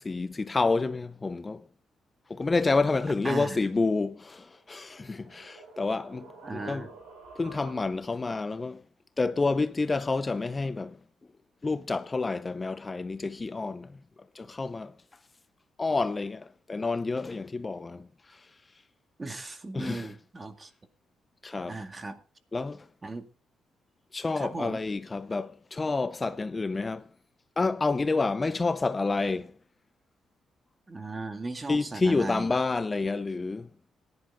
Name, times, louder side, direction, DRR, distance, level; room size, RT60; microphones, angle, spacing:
voice 1, 0.0-1.6 2.3-6.9 7.4-8.8 9.2-11.0 11.6-13.9 14.3-14.9 15.8-18.5 19.7-20.1 21.4-21.8 22.5-22.9 24.1-27.1 27.6-29.5 31.7-33.7, left 3 dB, 25° left, 0.6 m, -29 dB
voice 2, 3.2-3.6 6.4-6.9 19.2-20.7 21.7-22.2 23.0-23.3 24.4-24.8 30.9-32.5, right 2 dB, 25° right, 2.1 m, -36 dB
sound 1, 4.5-8.2, right 3 dB, 80° right, 7.3 m, -50 dB
17.0 x 10.5 x 3.8 m
cardioid pair, 90°, 0 cm